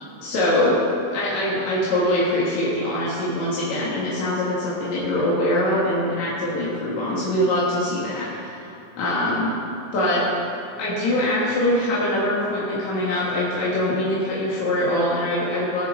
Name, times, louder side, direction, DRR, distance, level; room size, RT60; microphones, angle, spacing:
voice 1, 0.2-0.8 1.1-9.6 9.9-10.3 10.8-15.9, left 1 dB, 55° left, -7 dB, 2.2 m, -23 dB
19.0 x 7.1 x 3.7 m, 2.8 s
omnidirectional pair, 5.1 m